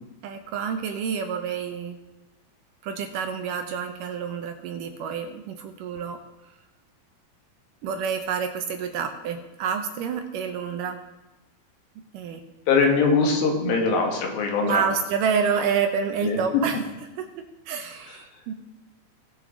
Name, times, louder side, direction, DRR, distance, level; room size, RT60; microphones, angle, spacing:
voice 1, 0.2-2.0 2.8-6.2 7.8-11.0 12.0-12.4 14.6-16.8 17.2-17.3 17.7-18.5, right 6 dB, 75° right, 6 dB, 2.2 m, -28 dB
voice 2, 12.7-14.8 16.2-16.4, left 4 dB, 75° left, 1 dB, 3.4 m, -22 dB
19.0 x 6.5 x 3.8 m, 1.0 s
omnidirectional pair, 4.2 m